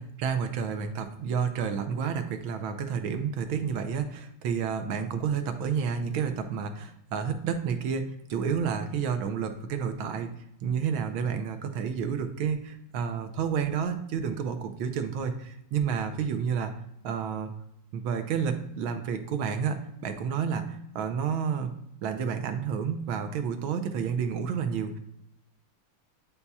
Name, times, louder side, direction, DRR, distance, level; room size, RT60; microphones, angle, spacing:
voice 1, 0.0-10.3 10.6-16.7 17.0-17.5 17.9-21.7 22.0-25.0, right 7 dB, 75° right, 7 dB, 1.4 m, -30 dB
8.3 x 5.4 x 2.3 m, 0.80 s
omnidirectional pair, 2.4 m